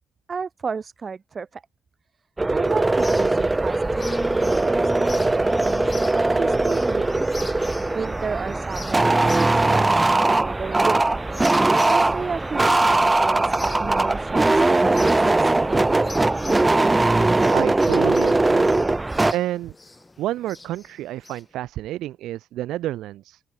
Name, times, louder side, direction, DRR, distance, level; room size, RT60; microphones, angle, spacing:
voice 1, 0.3-1.6 2.5-4.1 4.4-7.3 7.9-11.0 11.9-16.1, right 5 dB, 40° right, 3.5 m, -32 dB
sound 1, 2.4-19.3, right 2 dB, 15° right, 1.5 m, -20 dB
sound 2, 2.7-21.4, left 2 dB, 20° left, 4.7 m, -39 dB
voice 2, 17.5-18.8 19.3-19.7 20.2-23.4, right 14 dB, 85° right, 1.9 m, -29 dB
open air
cardioid pair, 90°, 0 cm